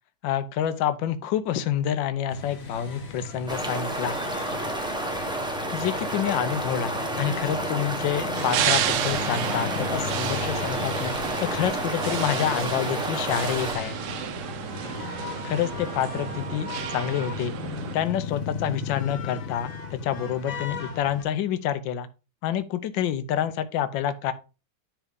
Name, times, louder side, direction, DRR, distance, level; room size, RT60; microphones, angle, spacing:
voice 1, 0.2-4.1 5.7-6.9 7.2-14.0 15.4-17.5 17.9-22.1 22.4-24.3, left 9 dB, 70° left, 12 dB, 1.3 m, -28 dB
sound 1, 2.3-21.2, left 6 dB, 45° left, 0.7 m, -36 dB
sound 2, 3.5-13.7, right 1 dB, 5° right, 0.5 m, -30 dB
sound 3, 8.3-18.0, right 11 dB, 80° right, 0.9 m, -32 dB
10.0 x 3.7 x 3.5 m, 0.32 s
omnidirectional pair, 2.3 m